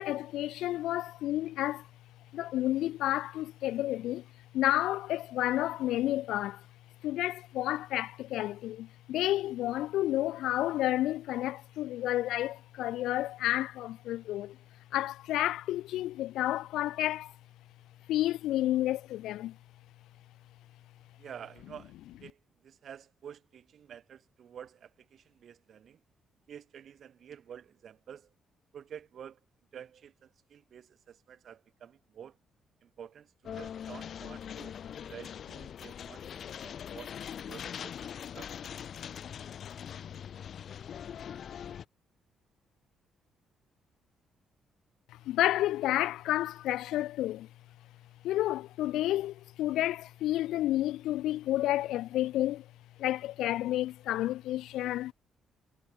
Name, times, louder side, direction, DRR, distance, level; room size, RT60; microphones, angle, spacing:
voice 1, 0.0-1.9 2.3-4.3 4.5-6.7 7.0-14.6 14.9-17.3 18.1-19.6 45.3-47.5 48.2-52.7 53.0-55.1, left 14 dB, 85° left, 0.5 m, -30 dB
voice 2, 21.2-26.0 26.5-28.3 28.7-29.4 29.7-32.4 32.8-38.5, right 8 dB, 60° right, 6.2 m, -50 dB
sound 1, 33.4-41.8, left 8 dB, 60° left, 1.2 m, -42 dB
cardioid pair, 90°, 0 cm